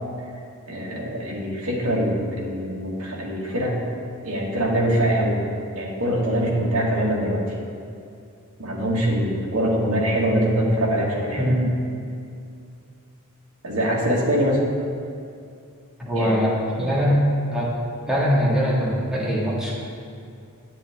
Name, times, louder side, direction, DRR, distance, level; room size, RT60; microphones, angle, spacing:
voice 1, 0.7-3.8 4.2-5.4 5.8-7.4 8.6-11.5 13.6-14.6 16.1-16.3, equal, 75° right, -3 dB, 1.8 m, -23 dB
voice 2, 11.3-11.8 16.0-17.2 17.5-17.7 18.1-19.7, equal, 5° right, -7 dB, 1.9 m, -22 dB
9.7 x 8.2 x 3.6 m, 2.4 s
head